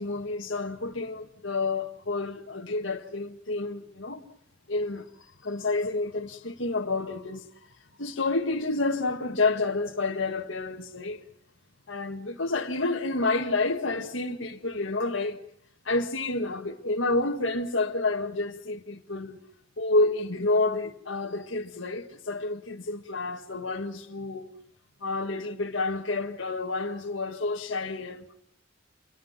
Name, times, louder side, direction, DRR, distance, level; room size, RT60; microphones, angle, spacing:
voice 1, 0.0-4.2 4.7-7.5 8.0-11.2 11.9-15.4 15.9-19.4 19.8-24.5 25.0-28.4, left 3 dB, 65° left, 1.7 m, -29 dB
28.0 x 23.5 x 5.9 m
head